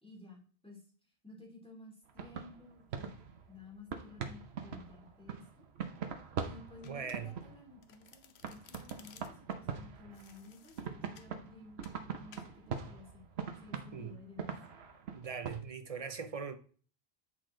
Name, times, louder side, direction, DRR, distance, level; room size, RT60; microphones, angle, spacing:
voice 1, 0.0-0.9 1.2-5.6 6.4-13.2 13.6-14.6, left 3 dB, 5° left, 2.8 m, -54 dB
sound 1, 2.1-8.1 8.4-10.5 10.8-15.6, right 6 dB, 80° right, 1.1 m, -42 dB
Domestic sounds home sounds, 6.8-7.5 7.8-9.5 10.1-11.3 11.8-12.0 12.3-12.5, left 8 dB, 80° left, 0.9 m, -58 dB
voice 2, 6.8-7.3 13.9-14.2 15.1-16.6, right 6 dB, 40° right, 0.6 m, -41 dB
8.0 x 4.6 x 3.8 m
omnidirectional pair, 1.1 m